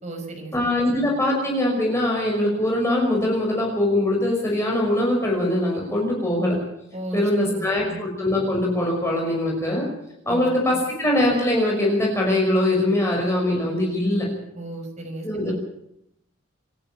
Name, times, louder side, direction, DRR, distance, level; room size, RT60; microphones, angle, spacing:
voice 1, 0.0-0.8 6.9-8.0 10.3-10.8 14.5-15.5, right 2 dB, 40° right, 5 dB, 5.6 m, -35 dB
voice 2, 0.5-6.6 7.1-9.8 10.3-14.3 15.2-15.5, left 1 dB, 15° left, -2 dB, 5.6 m, -22 dB
27.0 x 11.5 x 8.9 m, 0.78 s
head